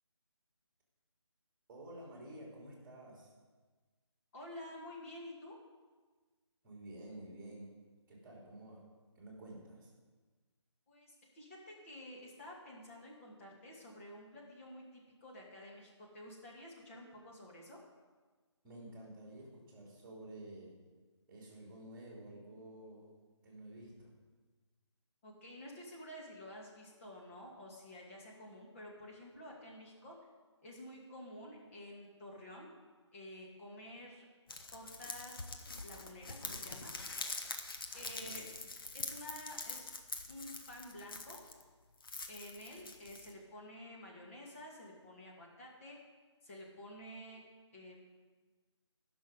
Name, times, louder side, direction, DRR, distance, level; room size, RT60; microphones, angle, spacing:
voice 1, 1.7-3.3 6.6-7.7 8.1-8.8 9.1-9.9 18.6-20.7 21.3-23.1 23.4-24.1 38.1-38.5, right 1 dB, 10° right, -2 dB, 2.9 m, -51 dB
voice 2, 4.3-5.6 10.9-17.8 25.2-30.1 30.6-32.7 33.1-34.3 34.7-35.5 35.8-36.9 37.9-38.5 38.9-39.9 40.3-41.4 42.3-46.0 46.4-47.4 47.7-48.1, left 1 dB, 25° left, -3 dB, 2.2 m, -51 dB
sound 1, 34.5-41.6 42.0-43.3, left 3 dB, 50° left, 1.1 m, -44 dB
17.5 x 6.2 x 5.1 m, 1.4 s
figure-of-eight pair, 155°, 15 cm